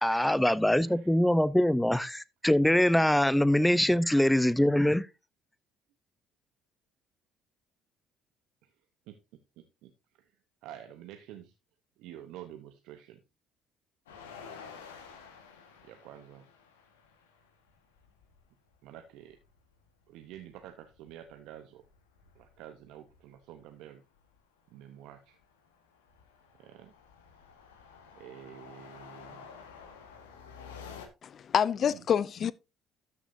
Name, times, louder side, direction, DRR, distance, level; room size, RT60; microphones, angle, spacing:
voice 1, 0.0-5.1, left 1 dB, 5° left, 0.7 m, -24 dB
voice 2, 0.8-1.1 8.6-8.7 9.1-9.2 9.6-10.3 10.6-11.5 12.0-13.2 15.8-16.5 18.8-19.4 20.1-21.9 22.4-24.0 24.7-25.4 26.6-26.9 28.1-29.5 31.8-32.0, right 11 dB, 75° right, 0.8 m, -49 dB
sound 1, 14.1-18.5 18.7-18.8 19.1-21.5 21.8-23.6 24.2-24.4 24.8-31.1, left 6 dB, 90° left, 1.4 m, -51 dB
voice 3, 31.2-32.5, left 8 dB, 50° left, 0.4 m, -27 dB
13.0 x 6.2 x 2.6 m
hypercardioid pair, 60°, 0 cm